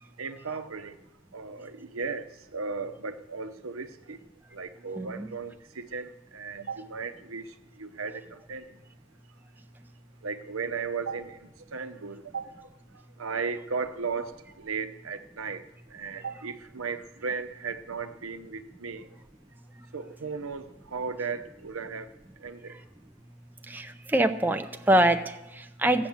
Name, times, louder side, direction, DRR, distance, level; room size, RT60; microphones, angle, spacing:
voice 1, 0.2-1.0 1.3-4.2 4.5-8.8 10.2-12.7 13.2-15.6 15.9-19.1 19.9-22.1 22.4-22.8, right 5 dB, 85° right, 9 dB, 0.9 m, -36 dB
voice 2, 5.0-5.3 23.7-26.1, right 1 dB, 10° right, 7 dB, 0.5 m, -25 dB
14.5 x 8.6 x 7.2 m, 0.96 s
head